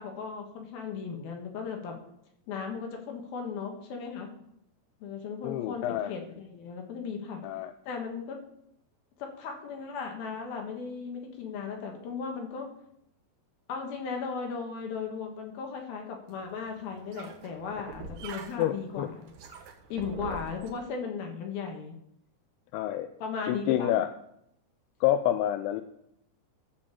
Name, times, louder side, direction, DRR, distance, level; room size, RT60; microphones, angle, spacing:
voice 1, 0.0-2.0 2.5-4.3 5.0-7.4 7.9-8.4 9.2-12.7 13.7-19.2 19.9-22.0 23.2-24.0, left 5 dB, 65° left, 2 dB, 3.0 m, -36 dB
voice 2, 5.4-6.1 7.4-7.7 18.6-19.1 20.2-20.4 22.7-23.1 23.5-24.1 25.0-25.8, left 12 dB, 85° left, 9 dB, 2.9 m, -28 dB
sound 1, 16.3-20.7, right 4 dB, 65° right, 3.0 m, -45 dB
15.0 x 5.2 x 7.1 m, 0.76 s
omnidirectional pair, 5.2 m